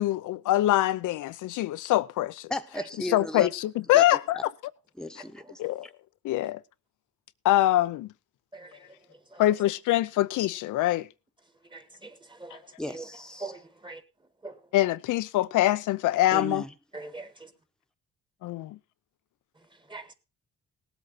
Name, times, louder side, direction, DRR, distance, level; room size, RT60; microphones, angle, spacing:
voice 1, 0.0-2.5 3.1-4.4 5.6-5.9 6.2-6.6 7.4-8.1 9.4-11.1 14.7-16.6 18.4-18.8, left 15 dB, 85° left, 0.7 m, -24 dB
voice 2, 2.5-3.5 3.9-4.0 5.0-5.6 12.8-13.6 16.3-16.7, left 1 dB, ahead, 1.2 m, -35 dB
voice 3, 16.9-17.3 19.9-20.1, right 3 dB, 15° right, 1.8 m, -40 dB
18.5 x 8.1 x 4.2 m
cardioid pair, 90°, 30 cm